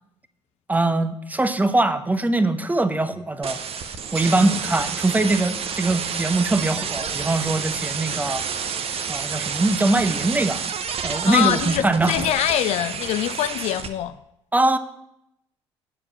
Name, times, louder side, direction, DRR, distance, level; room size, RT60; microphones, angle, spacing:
voice 1, 0.7-3.6 4.1-8.5 9.1-10.6 11.0-12.2 14.5-14.8, right 2 dB, 10° right, 0.7 m, -22 dB
sound 1, 3.4-13.9, right 6 dB, 40° right, 0.8 m, -29 dB
voice 2, 11.3-14.2, left 12 dB, 50° left, 0.4 m, -24 dB
8.4 x 5.2 x 6.9 m
figure-of-eight pair, 50°, 15 cm